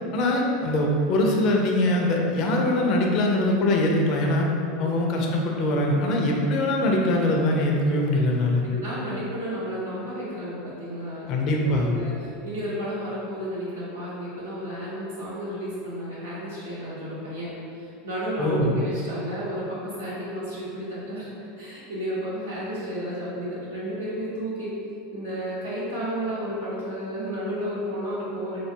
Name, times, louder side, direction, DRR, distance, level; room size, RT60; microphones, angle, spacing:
voice 1, 0.1-4.5 4.8-8.6 11.3-11.9 18.4-18.9, left 1 dB, 50° left, 0 dB, 0.4 m, -22 dB
voice 2, 8.6-24.7 25.1-28.6, equal, 85° right, -9 dB, 0.7 m, -32 dB
2.5 x 2.2 x 2.6 m, 2.6 s
hypercardioid pair, 85°, 0 cm